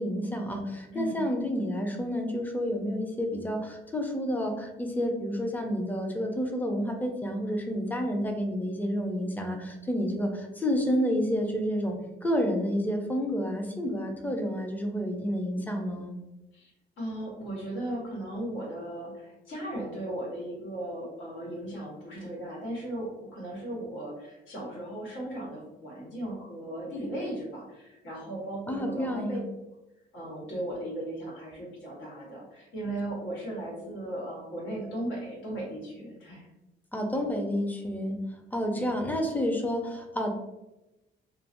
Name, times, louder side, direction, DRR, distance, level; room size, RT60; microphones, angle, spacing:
voice 1, 0.0-16.1 28.7-29.4 36.9-38.2 38.5-40.3, equal, 10° left, 3 dB, 0.5 m, -30 dB
voice 2, 0.9-1.3 16.5-16.7 17.0-29.4 30.1-36.5 38.8-38.9, right 1 dB, 80° left, -3 dB, 1.3 m, -37 dB
3.0 x 2.0 x 2.5 m, 0.96 s
cardioid pair, 90°, 20 cm